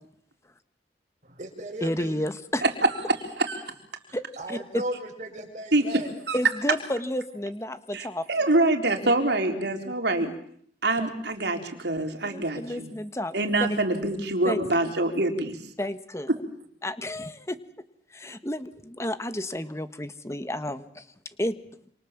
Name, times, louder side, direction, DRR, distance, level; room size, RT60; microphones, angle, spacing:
voice 1, 1.2-2.2 4.1-6.1, right 1 dB, 45° right, 7.3 m, -36 dB
voice 2, 1.8-2.6 4.1-4.8 6.3-8.3 11.0-11.1 12.2-13.3 14.4-14.6 15.8-16.3 16.8-17.6 18.1-21.1 21.4-21.6, left 1 dB, 15° left, 1.5 m, -31 dB
voice 3, 7.9-10.3 10.8-12.9 13.3-15.6, right 2 dB, 70° right, 4.0 m, -25 dB
27.5 x 27.0 x 7.5 m
head